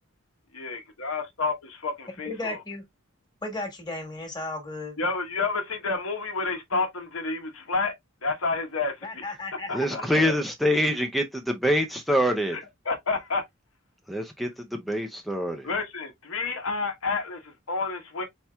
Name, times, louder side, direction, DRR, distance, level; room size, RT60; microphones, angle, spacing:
voice 1, 0.5-2.6 5.0-7.9 8.2-9.2 9.7-10.0 12.5-13.4 15.6-18.2, left 3 dB, 85° left, 1.1 m, -30 dB
voice 2, 2.2-2.8 3.4-5.0 9.0-10.3, left 2 dB, 20° left, 1.4 m, -35 dB
voice 3, 9.7-12.6 14.1-15.7, equal, ahead, 0.4 m, -25 dB
4.5 x 4.2 x 2.2 m
head